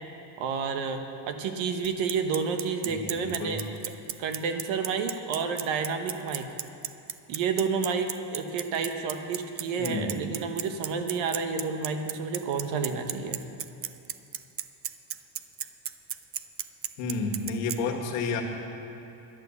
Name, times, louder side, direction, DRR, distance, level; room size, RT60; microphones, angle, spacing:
voice 1, 0.4-3.6 4.2-6.5 7.3-13.4, right 5 dB, 70° right, 6 dB, 1.3 m, -30 dB
Bicycle, 1.8-17.8, right 10 dB, 30° right, 0.4 m, -34 dB
voice 2, 2.8-3.6 9.8-10.2 17.0-18.4, left 4 dB, 85° left, 1 dB, 1.8 m, -31 dB
11.5 x 10.0 x 7.0 m, 2.7 s
cardioid pair, 115°, 48 cm